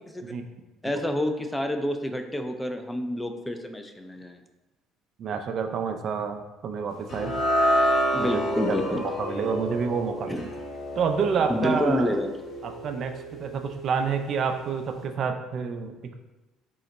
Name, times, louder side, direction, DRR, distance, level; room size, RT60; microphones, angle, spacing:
voice 1, 0.8-4.4 8.1-9.0 10.3-10.4 11.5-12.3, left 1 dB, 10° left, 6 dB, 0.5 m, -28 dB
voice 2, 5.2-7.3 8.2-10.4 11.0-12.1 12.6-16.1, right 6 dB, 55° right, 6 dB, 0.4 m, -29 dB
sound 1, 7.1-13.5, equal, 45° left, 0.9 m, -28 dB
3.8 x 2.1 x 4.0 m, 1.1 s
hypercardioid pair, 65°, 0 cm